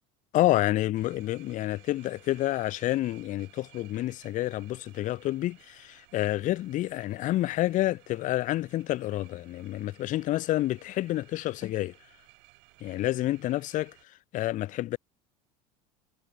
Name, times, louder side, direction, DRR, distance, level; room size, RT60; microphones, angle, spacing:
voice 1, 0.3-11.9 12.8-13.9 14.3-15.0, left 15 dB, 40° left, 0.4 m, -29 dB
sound 1, 0.9-14.0, right 32 dB, 70° right, 4.2 m, -58 dB
hypercardioid pair, 80°, 20 cm